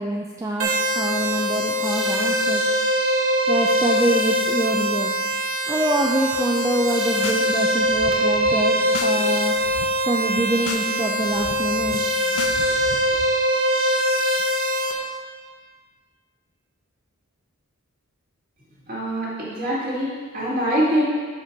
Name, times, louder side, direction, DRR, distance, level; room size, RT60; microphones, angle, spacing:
voice 1, 0.0-2.6 3.5-5.1 5.7-9.5 10.0-12.1, right 1 dB, 15° right, -1 dB, 0.4 m, -25 dB
sound 1, 0.6-14.9, equal, 70° right, 1.2 m, -22 dB
sound 2, 6.9-7.5 7.7-9.2 9.5-9.8 10.3-10.9 11.2-13.2, left 5 dB, 80° left, 0.6 m, -36 dB
voice 2, 18.9-21.0, equal, 40° right, -7 dB, 2.1 m, -24 dB
6.1 x 5.1 x 5.2 m, 1.5 s
head